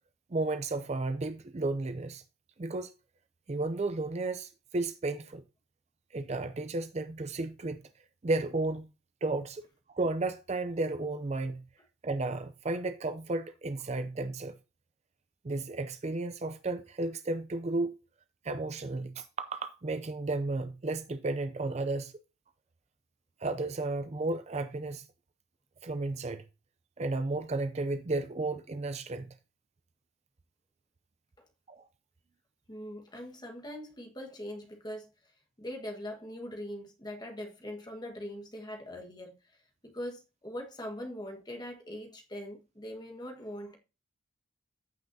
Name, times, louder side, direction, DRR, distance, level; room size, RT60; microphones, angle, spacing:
voice 1, 0.3-2.2 2.6-2.9 3.5-5.4 6.1-7.8 8.2-8.9 9.2-9.6 9.9-11.6 12.0-14.6 15.4-17.9 18.4-22.1 23.4-25.0 25.8-26.4 27.0-29.3 31.7-31.8, right 2 dB, 30° right, 0.4 m, -33 dB
voice 2, 32.7-35.1 35.6-39.4 39.8-43.8, left 1 dB, 20° left, 1.5 m, -41 dB
14.5 x 5.7 x 2.7 m
head